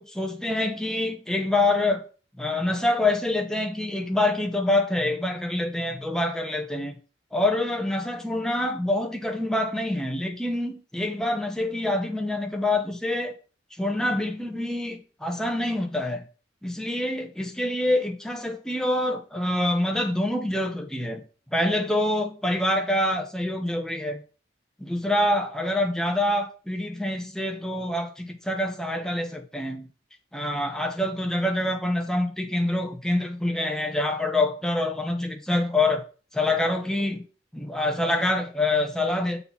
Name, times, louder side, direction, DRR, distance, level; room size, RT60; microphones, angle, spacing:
voice 1, 0.0-2.0 2.4-7.0 7.3-13.3 13.8-16.2 16.6-21.2 21.5-24.2 24.8-29.9 30.3-36.0 36.3-37.2 37.5-39.4, left 1 dB, 5° left, 1.0 m, -26 dB
6.6 x 4.1 x 5.7 m
head